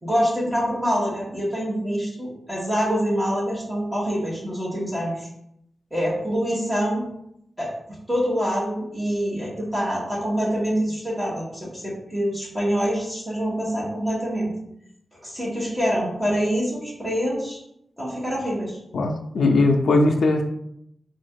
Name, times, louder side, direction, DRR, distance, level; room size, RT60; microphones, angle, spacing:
voice 1, 0.0-5.3 5.9-7.0 7.6-7.7 8.1-14.5 15.2-17.6 18.0-18.8, equal, 5° right, -6 dB, 1.5 m, -25 dB
voice 2, 18.9-20.4, left 2 dB, 85° left, 2 dB, 0.4 m, -19 dB
4.1 x 2.5 x 4.6 m, 0.76 s
wide cardioid pair, 170°, 0 cm